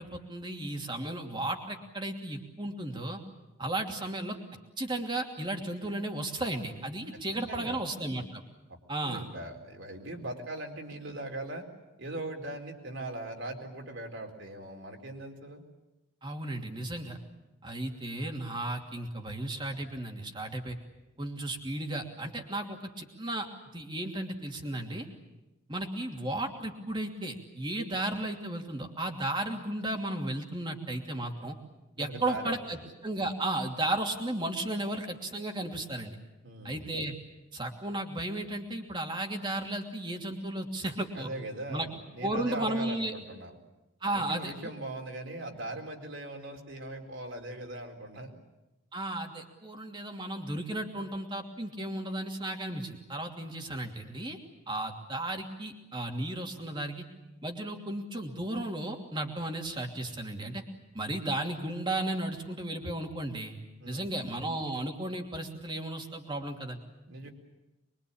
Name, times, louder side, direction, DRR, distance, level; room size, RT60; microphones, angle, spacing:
voice 1, 0.0-3.2 3.6-4.4 4.8-8.4 8.9-9.3 16.2-17.2 17.6-20.8 21.2-23.5 23.7-25.1 25.7-31.6 32.0-32.8 33.0-36.2 36.6-37.1 37.5-41.3 41.7-41.9 42.2-43.1 44.0-44.5 48.9-54.4 54.7-57.0 57.4-60.6 60.9-63.5 63.9-66.8, right 1 dB, 20° right, 3 dB, 2.8 m, -34 dB
voice 2, 6.8-7.2 7.5-7.8 8.7-8.8 9.0-11.7 12.0-15.6 32.0-32.8 36.4-36.9 41.1-43.5 44.1-48.3 63.8-64.1 67.1-67.3, right 2 dB, 60° right, 2 dB, 4.3 m, -40 dB
24.0 x 24.0 x 8.8 m, 1.0 s
head